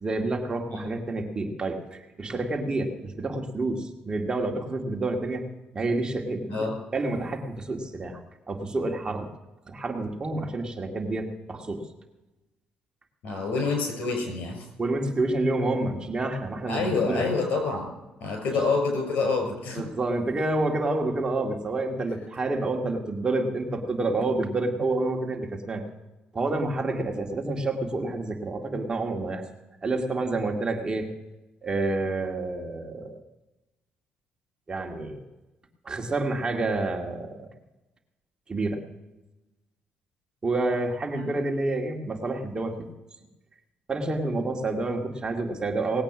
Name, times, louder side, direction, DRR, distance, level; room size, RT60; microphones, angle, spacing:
voice 1, 0.0-5.5 5.7-6.7 6.9-8.2 8.5-9.3 9.7-11.8 14.8-17.3 18.5-18.6 19.7-25.8 26.3-29.4 29.8-31.1 31.6-33.2 34.7-35.3 35.8-37.5 38.5-38.8 40.4-42.9 43.9-46.0, right 2 dB, 30° right, 3 dB, 2.1 m, -28 dB
voice 2, 13.2-14.6 16.7-17.9 18.2-19.8 41.1-41.4, left 4 dB, 75° left, 3 dB, 6.3 m, -27 dB
18.5 x 8.7 x 6.1 m, 1.0 s
cardioid pair, 90°, 3 cm